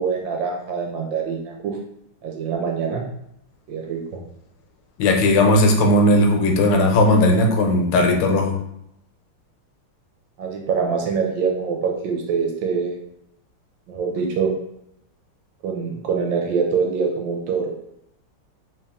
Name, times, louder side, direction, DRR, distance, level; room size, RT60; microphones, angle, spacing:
voice 1, 0.0-1.8 2.2-3.0 3.7-4.2 10.4-13.0 13.9-14.5 15.6-17.7, right 5 dB, 75° right, 1 dB, 1.1 m, -24 dB
voice 2, 5.0-8.5, left 1 dB, 85° left, 3 dB, 1.6 m, -17 dB
3.4 x 2.8 x 3.5 m, 0.79 s
omnidirectional pair, 2.3 m